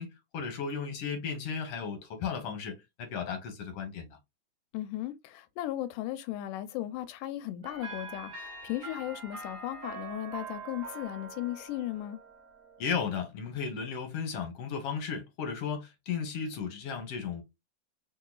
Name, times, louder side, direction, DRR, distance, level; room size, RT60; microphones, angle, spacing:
voice 1, 0.0-4.2 12.8-17.4, left 6 dB, 60° left, 1.8 m, -35 dB
voice 2, 4.7-12.2, left 14 dB, 90° left, 2.2 m, -36 dB
sound 1, 7.6-13.2, right 3 dB, 50° right, 0.9 m, -44 dB
4.3 x 3.7 x 2.3 m
omnidirectional pair, 3.7 m